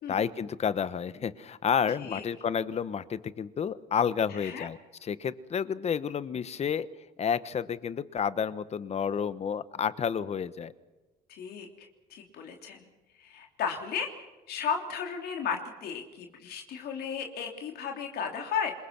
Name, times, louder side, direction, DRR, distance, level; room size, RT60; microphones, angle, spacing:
voice 1, 0.1-6.9 7.2-10.7, left 7 dB, 40° left, 15 dB, 1.2 m, -30 dB
voice 2, 11.3-12.9 13.2-18.7, left 7 dB, 70° left, 3 dB, 3.3 m, -35 dB
27.0 x 22.5 x 6.1 m, 1.2 s
cardioid pair, 110°, 17 cm